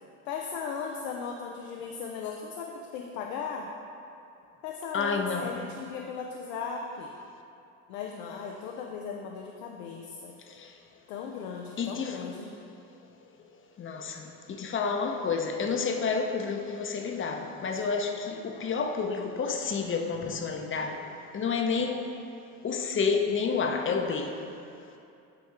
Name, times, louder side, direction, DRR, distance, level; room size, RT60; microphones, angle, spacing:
voice 1, 0.3-3.7 4.6-7.1 7.9-10.3 11.1-12.6, left 6 dB, 85° left, 1 dB, 0.6 m, -37 dB
voice 2, 4.9-5.6 10.5-10.7 11.8-12.2 13.8-22.0 22.6-24.4, left 5 dB, 30° left, 4 dB, 0.8 m, -30 dB
8.4 x 3.5 x 4.6 m, 2.6 s
supercardioid pair, 85°, 38 cm